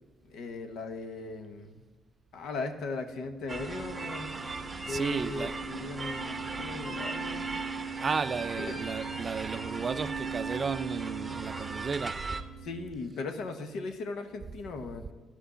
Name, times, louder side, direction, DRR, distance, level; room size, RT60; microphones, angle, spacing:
voice 1, 0.3-1.8 2.3-4.5 4.9-7.6 8.6-8.8 12.6-15.0, left 3 dB, 80° left, 1.1 m, -38 dB
sound 1, 2.8-12.9, right 5 dB, 90° right, 0.5 m, -41 dB
sound 2, 3.5-12.4, right 3 dB, 25° right, 0.8 m, -38 dB
voice 2, 4.4-5.6 8.0-12.3, right 5 dB, 40° right, 0.4 m, -34 dB
11.5 x 4.5 x 6.8 m
cardioid pair, 90°, 0 cm